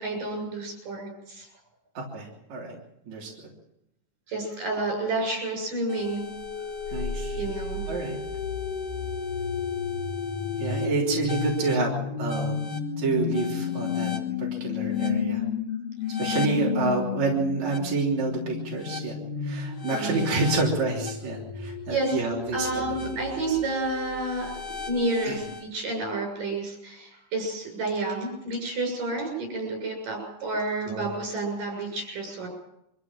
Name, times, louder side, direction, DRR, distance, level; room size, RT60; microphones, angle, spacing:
voice 1, 0.0-1.5 4.3-6.3 7.4-7.8 19.9-20.3 21.9-22.2 22.5-32.5, right 2 dB, 85° right, 2 dB, 8.5 m, -30 dB
voice 2, 1.9-2.8 3.1-3.3 6.9-7.4 7.9-8.2 10.6-12.6 13.0-14.1 14.4-15.4 16.2-19.2 19.4-23.0 23.5-23.6 25.2-25.4 30.9-31.1, right 3 dB, 60° right, -3 dB, 4.6 m, -28 dB
sound 1, 5.9-25.6, left 6 dB, 50° left, 2.6 m, -32 dB
24.5 x 14.5 x 7.4 m, 0.81 s
omnidirectional pair, 3.7 m